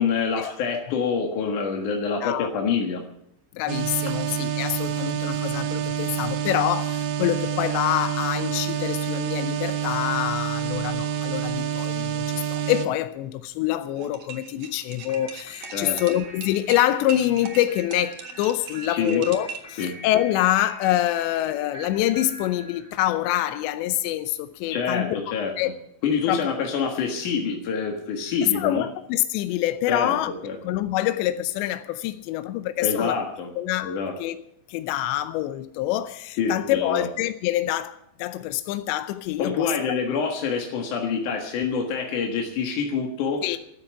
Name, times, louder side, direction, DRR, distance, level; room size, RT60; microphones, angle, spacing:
voice 1, 0.0-3.0 15.7-16.0 18.9-19.2 19.8-19.9 24.7-25.5 26.0-28.8 29.9-30.2 30.4-30.6 32.8-33.5 33.8-34.1 36.4-37.1 39.4-43.4, left 6 dB, 60° left, 2.4 m, -26 dB
voice 2, 3.5-25.2 25.6-25.7 26.3-26.5 28.4-30.3 30.6-33.2 33.6-34.4 34.7-39.7 43.4-43.6, left 14 dB, 80° left, 2.8 m, -26 dB
sound 1, 3.7-12.9, right 9 dB, 85° right, 3.4 m, -27 dB
sound 2, 14.0-19.8, right 6 dB, 65° right, 1.8 m, -39 dB
sound 3, 15.1-23.4, equal, 25° left, 4.4 m, -44 dB
13.0 x 10.0 x 8.9 m
omnidirectional pair, 5.4 m